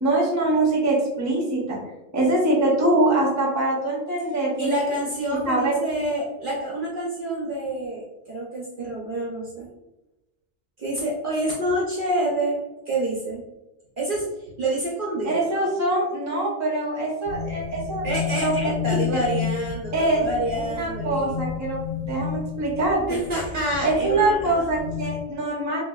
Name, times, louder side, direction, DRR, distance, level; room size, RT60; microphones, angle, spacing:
voice 1, 0.0-1.8 2.1-4.8 5.4-5.7 15.2-18.0 18.3-18.5 19.1-19.2 19.9-20.3 20.6-21.8 22.1-23.2 23.8-25.8, right 2 dB, 20° right, -3 dB, 0.7 m, -23 dB
voice 2, 4.6-9.7 10.8-12.6 12.9-13.4 14.0-14.3 14.6-15.4 18.0-21.4 23.1-24.6, right 1 dB, 55° right, -3 dB, 0.7 m, -27 dB
sound 1, 17.3-25.2, left 7 dB, 75° left, 0.8 m, -31 dB
4.3 x 2.1 x 2.3 m, 1.0 s
omnidirectional pair, 1.2 m